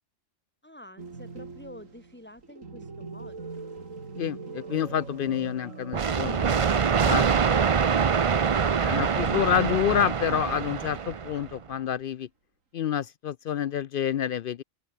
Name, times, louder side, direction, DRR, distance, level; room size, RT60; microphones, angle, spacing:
voice 1, 0.6-3.7, left 1 dB, 10° left, 3.0 m, -49 dB
sound 1, 1.0-7.5 7.8-7.9 9.6-10.2 11.3-12.0, right 4 dB, 75° right, 3.1 m, -42 dB
voice 2, 4.2-6.5 7.0-7.2 8.8-12.3 12.7-14.6, left 9 dB, 65° left, 0.5 m, -28 dB
sound 2, 5.9-11.5, right 6 dB, 45° right, 0.4 m, -24 dB
open air
omnidirectional pair, 1.4 m